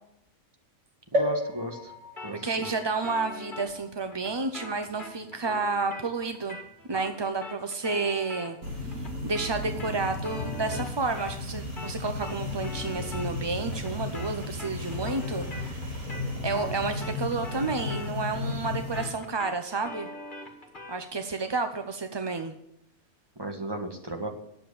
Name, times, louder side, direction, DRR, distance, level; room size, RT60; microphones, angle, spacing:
voice 1, 1.1-1.9 2.2-2.7 23.4-24.3, right 1 dB, 20° right, 3 dB, 1.5 m, -35 dB
sound 1, 1.1-4.8 5.4-5.5 5.7-5.8, equal, 50° right, 3.9 m, -33 dB
sound 2, 2.2-11.5 11.8-21.1, left 2 dB, 35° left, 1.9 m, -44 dB
voice 2, 2.4-6.6 6.9-16.1 16.4-20.1 20.9-22.5, right 4 dB, 35° right, 7 dB, 0.4 m, -31 dB
sound 3, 8.6-19.0, left 2 dB, 85° right, 3.6 m, -34 dB
9.4 x 7.5 x 8.5 m, 0.78 s
omnidirectional pair, 1.5 m